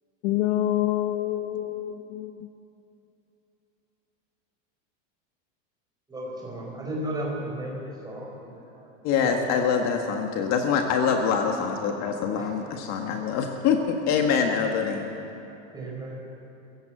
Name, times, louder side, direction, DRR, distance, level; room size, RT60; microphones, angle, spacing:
voice 1, 0.2-2.5, left 13 dB, 60° left, 9 dB, 1.0 m, -27 dB
voice 2, 6.1-8.9 9.1-9.4 12.3-12.5 13.1-13.2 15.7-16.2, right 1 dB, 10° right, -3 dB, 5.0 m, -35 dB
voice 3, 9.0-15.0, left 6 dB, 45° left, 3 dB, 1.7 m, -25 dB
22.5 x 15.5 x 7.9 m, 2.8 s
supercardioid pair, 150°, 39 cm